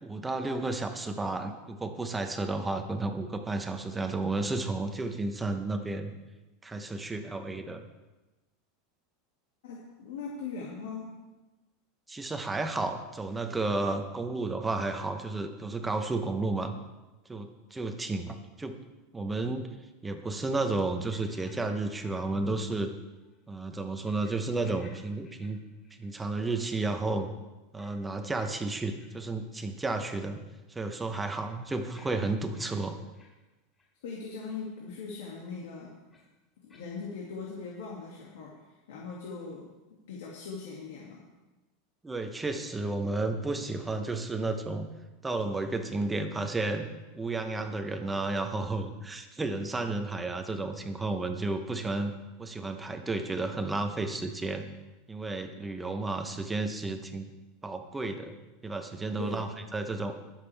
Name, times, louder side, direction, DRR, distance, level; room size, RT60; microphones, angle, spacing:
voice 1, 0.0-6.1 6.6-7.9 12.1-16.7 17.3-18.8 19.1-19.7 20.0-22.9 23.5-25.6 26.0-27.3 27.7-30.4 30.7-33.0 42.0-44.9 45.2-46.9 47.1-52.1 52.4-54.6 55.1-57.3 57.6-58.3 58.6-60.1, right 2 dB, 10° right, 6 dB, 0.9 m, -32 dB
voice 2, 9.6-11.1 34.0-36.0 36.6-41.3 59.2-59.5, left 4 dB, 85° left, -3 dB, 2.3 m, -40 dB
sound 1, 21.0-22.9 23.2-23.4 24.0-24.4 24.6-25.0 25.2-26.1 26.4-26.6 27.8-27.9 28.3-28.5 28.9-29.1 29.6-29.7 30.2-30.3 30.8-32.7 33.1-33.3 33.7-33.9 34.4-34.5 36.1-36.2 36.7-36.9, left 4 dB, 20° left, 4.2 m, -58 dB
21.5 x 7.5 x 3.4 m, 1.1 s
supercardioid pair, 165°, 0 cm